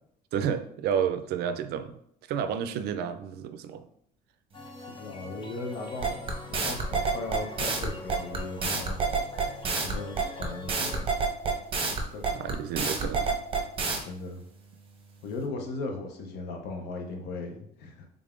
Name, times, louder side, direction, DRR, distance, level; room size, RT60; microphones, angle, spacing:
voice 1, 0.3-2.0 2.3-3.8 12.3-13.4, right 8 dB, 70° right, 10 dB, 0.4 m, -30 dB
sound 1, 4.5-11.0, left 2 dB, 30° left, 0.6 m, -44 dB
voice 2, 4.9-6.2 6.5-9.0 9.8-11.1 12.1-12.4 14.0-14.4 15.2-18.1, left 3 dB, 80° left, 3 dB, 0.8 m, -37 dB
sound 2, 6.0-14.0, right 4 dB, 35° right, 0.8 m, -28 dB
3.5 x 3.4 x 2.5 m, 0.71 s
cardioid pair, 110°, 17 cm